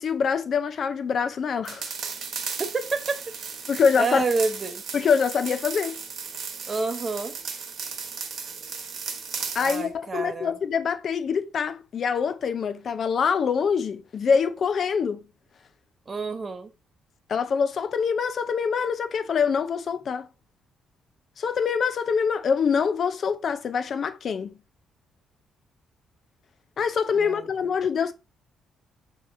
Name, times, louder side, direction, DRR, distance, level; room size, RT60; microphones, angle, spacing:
voice 1, 0.0-1.9 3.7-4.2 4.9-6.0 9.5-15.2 17.3-20.3 21.4-24.6 26.8-28.1, left 6 dB, 55° left, 0.5 m, -25 dB
sound 1, 1.6-9.8, right 5 dB, 60° right, 1.0 m, -35 dB
voice 2, 2.7-3.2 4.0-4.8 6.7-7.4 9.6-10.5 16.1-16.7 27.2-27.5, right 3 dB, 35° right, 0.8 m, -28 dB
6.8 x 3.0 x 2.6 m
cardioid pair, 90°, 0 cm